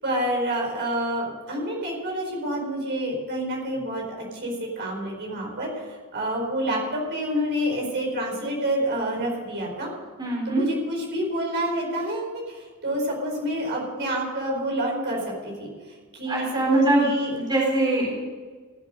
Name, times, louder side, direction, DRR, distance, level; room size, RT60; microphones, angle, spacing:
voice 1, 0.0-9.9 10.4-15.7 16.1-17.4, equal, 55° right, -1 dB, 4.8 m, -28 dB
voice 2, 10.2-10.6 16.3-18.2, right 2 dB, 20° right, -3 dB, 3.9 m, -23 dB
15.5 x 8.0 x 7.9 m, 1.4 s
head